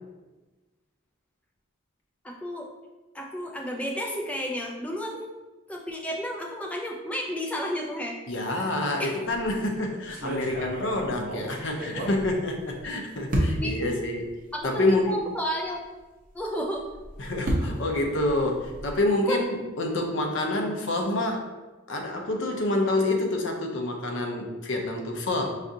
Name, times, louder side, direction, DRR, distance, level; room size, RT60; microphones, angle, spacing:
voice 1, 2.2-2.7 3.1-5.3 5.7-8.2 9.0-9.2 13.6-14.1 14.5-15.8 16.3-16.8 19.2-19.4, equal, 5° left, -2 dB, 0.4 m, -32 dB
voice 2, 8.3-14.2 14.6-15.2 17.2-21.5 21.9-25.6, left 2 dB, 60° left, 2 dB, 0.5 m, -27 dB
sound 1, 9.2-9.6 10.1-12.8 13.3-13.9 14.6-14.7 15.0-15.1 16.8-19.1, equal, 40° right, 0.7 m, -31 dB
4.8 x 2.4 x 2.7 m, 1.2 s
head